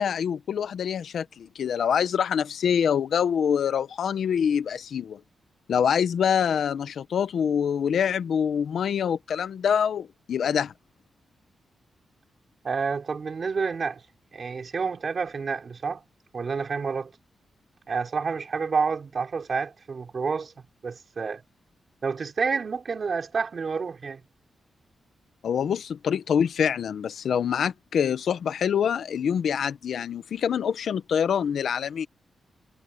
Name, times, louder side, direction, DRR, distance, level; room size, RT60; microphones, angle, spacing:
voice 1, 0.0-5.2 5.7-10.7 25.4-32.1, left 8 dB, 70° left, 1.1 m, -25 dB
voice 2, 12.6-14.0 14.3-16.0 16.3-17.1 17.9-20.5 20.8-21.4 22.0-24.2, right 5 dB, 40° right, 3.7 m, -29 dB
wide cardioid pair, 150°, 0 cm